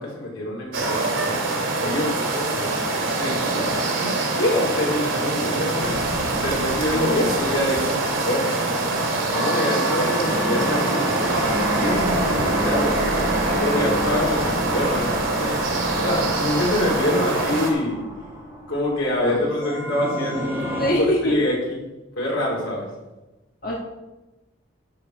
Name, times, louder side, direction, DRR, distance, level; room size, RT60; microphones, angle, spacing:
voice 1, 0.0-1.3 1.8-3.7 4.0-6.0 6.4-8.5 9.3-11.2 11.7-13.2 13.6-15.6 16.0-18.0 18.7-20.6 20.8-21.7 22.2-22.9, left 1 dB, 90° left, -4 dB, 3.8 m, -25 dB
sound 1, 0.7-17.7, right 2 dB, 90° right, 2.3 m, -24 dB
sound 2, 5.8-20.9, equal, 15° right, 1.9 m, -29 dB
voice 2, 6.9-7.4 19.2-19.4 20.8-21.3 23.6-23.7, equal, 45° left, -4 dB, 1.4 m, -24 dB
10.0 x 7.3 x 4.7 m, 1.1 s
head